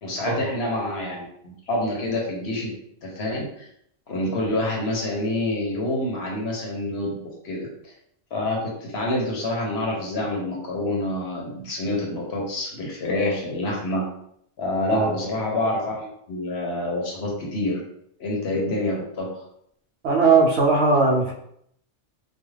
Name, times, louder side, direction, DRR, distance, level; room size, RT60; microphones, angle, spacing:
voice 1, 0.0-2.7 3.0-3.7 4.1-7.7 8.3-14.0 14.6-17.8 18.2-19.4, left 1 dB, 60° left, -1 dB, 0.9 m, -27 dB
voice 2, 20.0-21.3, right 4 dB, 65° right, -1 dB, 0.8 m, -19 dB
2.4 x 2.3 x 3.1 m, 0.71 s
omnidirectional pair, 1.3 m